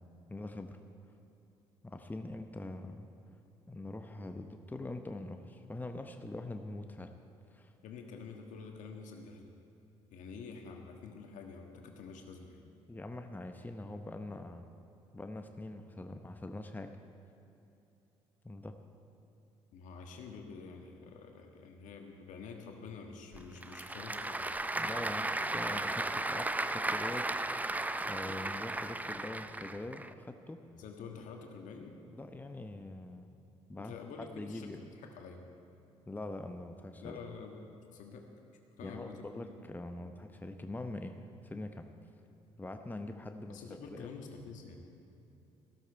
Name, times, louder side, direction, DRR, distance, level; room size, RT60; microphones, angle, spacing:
voice 1, 0.3-0.8 1.8-3.1 3.7-7.1 7.5-7.7 12.9-14.6 15.1-16.9 18.4-18.7 24.8-27.3 28.0-30.6 32.1-33.3 33.7-33.9 34.3-34.8 36.1-37.2 38.8-41.2 41.4-41.9 42.6-43.6 43.9-44.1, left 2 dB, 10° left, 6 dB, 0.9 m, -43 dB
voice 2, 7.8-9.5 10.1-12.7 19.7-24.5 30.8-32.0 33.8-35.5 37.0-38.3 38.8-39.5 43.5-44.8, left 5 dB, 65° left, 3 dB, 1.7 m, -48 dB
Applause / Crowd, 23.3-30.1, right 2 dB, 10° right, 0.5 m, -35 dB
14.5 x 13.0 x 4.7 m, 2.9 s
hypercardioid pair, 50°, 14 cm